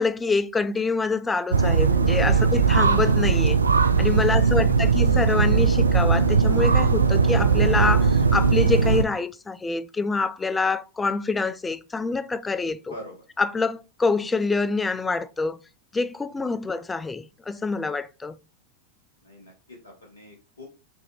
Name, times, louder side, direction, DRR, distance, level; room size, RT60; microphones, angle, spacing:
voice 1, 0.0-3.6 4.0-12.9 13.4-15.6 15.9-18.4, left 4 dB, 10° left, 0.3 m, -26 dB
sound 1, 1.5-9.0, right 5 dB, 75° right, 0.4 m, -19 dB
voice 2, 19.2-20.7, left 1 dB, 75° left, 0.9 m, -43 dB
4.5 x 3.7 x 2.7 m
figure-of-eight pair, 90°, 0 cm